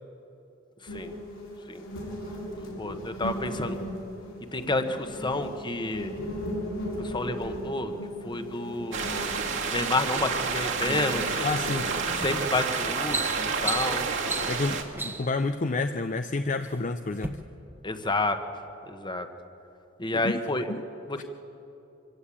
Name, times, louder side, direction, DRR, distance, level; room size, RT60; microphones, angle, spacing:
sound 1, 0.9-12.0, equal, 75° left, 6.4 m, -37 dB
voice 1, 2.8-3.8 4.5-6.1 7.0-7.9 8.2-9.3 9.7-11.5 12.2-14.0 17.8-18.4 18.8-19.3 20.0-20.6 21.1-21.2, left 2 dB, 25° left, 8 dB, 1.1 m, -30 dB
sound 2, 8.9-14.8, right 5 dB, 65° right, 2.0 m, -29 dB
voice 2, 11.4-11.9 14.4-17.4 20.2-20.4 20.7-20.8 21.2-21.3, left 3 dB, 40° left, 8 dB, 0.5 m, -29 dB
sound 3, 12.2-12.4 12.8-15.4 16.2-16.8 17.1-17.3, right 3 dB, 10° right, 1.0 m, -34 dB
24.5 x 16.0 x 8.5 m, 2.9 s
head